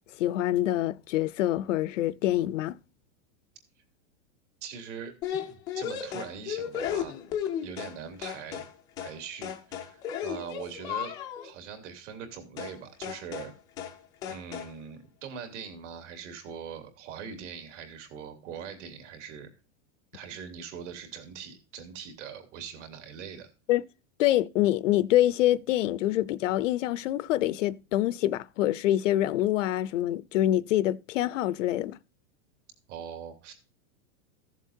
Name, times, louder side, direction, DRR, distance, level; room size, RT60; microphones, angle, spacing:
voice 1, 0.2-2.8 23.7-23.8 24.2-32.0, left 14 dB, 65° left, 0.6 m, -26 dB
voice 2, 4.6-5.1 5.5-7.2 7.6-8.7 9.0-11.1 11.4-13.5 14.3-19.5 20.1-23.5 32.9-33.5, right 7 dB, 55° right, 3.0 m, -42 dB
sound 1, 5.2-8.0 8.2-8.7 9.0-9.2 9.4-11.5 12.6-12.8 13.0-13.5 13.8-14.0 14.2-14.7, left 9 dB, 10° left, 0.4 m, -34 dB
15.0 x 7.4 x 2.7 m
supercardioid pair, 175°, 41 cm